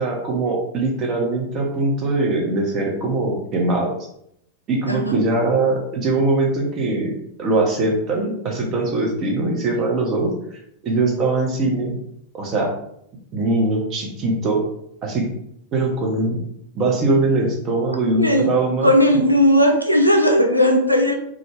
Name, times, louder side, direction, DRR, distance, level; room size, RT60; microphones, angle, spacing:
voice 1, 0.0-4.0 4.7-11.9 12.3-12.7 13.3-14.6 15.0-15.3 15.7-16.4 16.7-18.9, right 2 dB, 35° right, 0 dB, 0.6 m, -21 dB
voice 2, 4.9-5.2 18.2-18.5 18.8-21.1, equal, 90° left, 2 dB, 0.4 m, -16 dB
2.3 x 2.0 x 3.2 m, 0.74 s
figure-of-eight pair, 90°, 0 cm